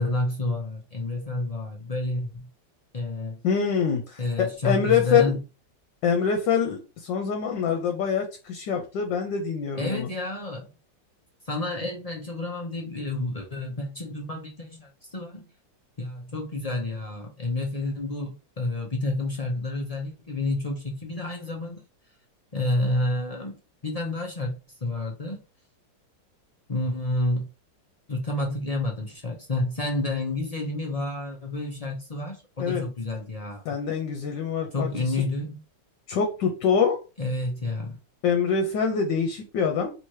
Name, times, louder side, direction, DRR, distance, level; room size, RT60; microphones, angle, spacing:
voice 1, 0.0-2.5 2.9-3.4 4.2-5.4 9.8-10.7 11.5-15.5 16.0-21.8 22.5-24.6 24.8-25.4 26.7-27.5 28.1-33.8 34.7-35.6 37.2-38.0, left 2 dB, 40° left, 0.5 m, -29 dB
voice 2, 3.4-5.2 6.0-10.1 32.6-32.8 33.6-35.1 36.1-37.0 38.2-39.9, left 6 dB, 75° left, 1.5 m, -25 dB
3.4 x 2.9 x 4.7 m
omnidirectional pair, 2.0 m